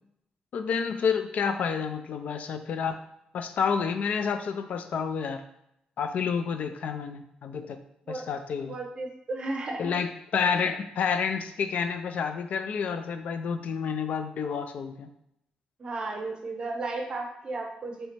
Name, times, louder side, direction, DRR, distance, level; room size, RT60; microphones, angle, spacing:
voice 1, 0.5-3.0 3.3-5.4 6.0-7.8 8.1-8.8 9.8-15.1, left 6 dB, 60° left, 8 dB, 0.3 m, -29 dB
voice 2, 8.7-10.0 15.8-18.1, right 2 dB, 35° right, 2 dB, 0.6 m, -34 dB
3.2 x 2.8 x 4.3 m, 0.79 s
wide cardioid pair, 160°, 3 cm